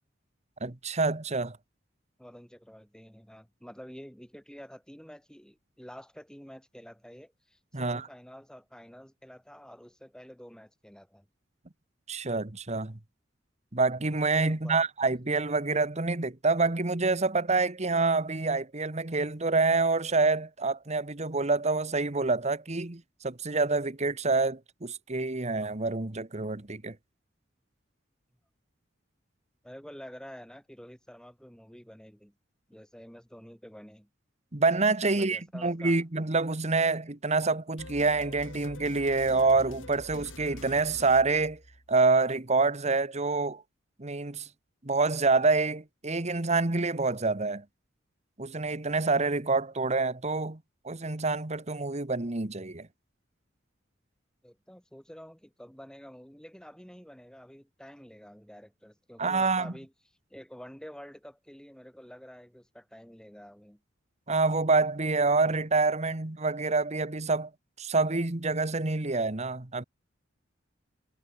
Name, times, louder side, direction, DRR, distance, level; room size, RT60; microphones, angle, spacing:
voice 1, 0.6-1.6 7.7-8.0 12.1-13.0 13.7-26.9 34.5-41.6 41.9-43.6 44.0-44.5 44.8-47.6 48.4-50.6 50.8-52.9 59.2-59.7 64.3-67.5 67.8-69.8, right 3 dB, 35° right, 1.4 m, -27 dB
voice 2, 2.2-11.3 14.5-14.8 29.6-32.3 32.7-34.1 35.1-36.0 54.4-59.9 60.3-63.8, equal, 5° left, 5.0 m, -49 dB
sound 1, 37.8-42.1, left 1 dB, 85° left, 7.9 m, -46 dB
head